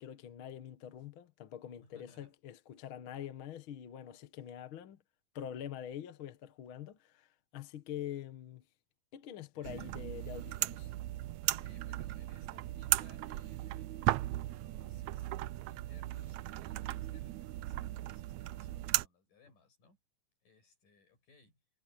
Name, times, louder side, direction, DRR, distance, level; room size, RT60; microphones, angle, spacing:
voice 1, 0.0-5.0 5.3-8.6 9.1-10.9, left 10 dB, 55° left, 1.5 m, -45 dB
voice 2, 1.8-2.3 9.5-10.1 11.4-20.0 20.4-21.6, left 3 dB, 75° left, 8.4 m, -65 dB
sound 1, 9.6-19.1, right 16 dB, 80° right, 1.7 m, -37 dB
omnidirectional pair, 3.8 m